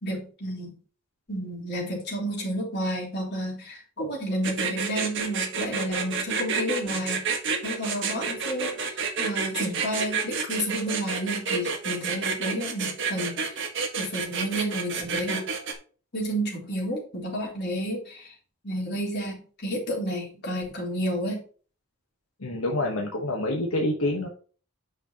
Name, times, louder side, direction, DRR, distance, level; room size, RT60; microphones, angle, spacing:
voice 1, 0.0-0.8 1.3-7.3 7.6-13.4 14.0-15.5 16.1-18.3 18.6-21.4, equal, 50° left, -3 dB, 3.9 m, -31 dB
sound 1, 4.4-15.7, right 5 dB, 55° right, 1.6 m, -29 dB
voice 2, 22.4-24.3, left 1 dB, 70° left, 0 dB, 1.3 m, -27 dB
9.1 x 6.2 x 3.0 m, 0.39 s
head